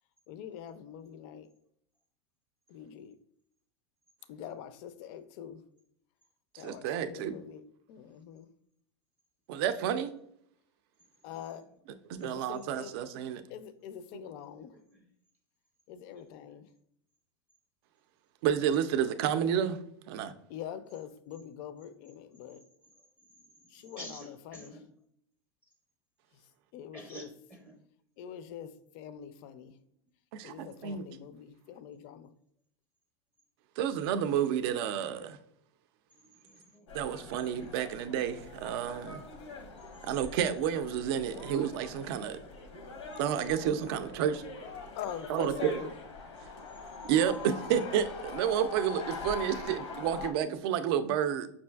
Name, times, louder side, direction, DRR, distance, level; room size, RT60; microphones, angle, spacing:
voice 1, 0.3-1.5 2.7-3.2 4.3-5.6 6.6-8.5 11.2-11.7 12.2-12.9 13.5-14.7 15.9-16.7 20.5-22.6 23.7-24.8 26.3-26.4 26.7-27.3 28.2-29.8 30.4-32.3 45.0-45.9, left 9 dB, 55° left, 0.4 m, -44 dB
voice 2, 6.6-7.4 9.5-10.1 12.1-13.4 18.4-19.8 20.1-20.3 30.3-31.1 33.8-35.4 36.9-39.2 40.0-42.4 43.2-44.4 45.3-45.8 47.0-51.5, right 9 dB, 60° right, 0.4 m, -30 dB
voice 3, 14.7-15.0 23.5-24.9 26.9-27.8 36.2-37.5 39.5-39.6, equal, 5° right, 0.5 m, -50 dB
sound 1, 36.9-50.3, left 4 dB, 90° left, 0.8 m, -43 dB
5.5 x 2.5 x 2.2 m
hypercardioid pair, 115°, 15 cm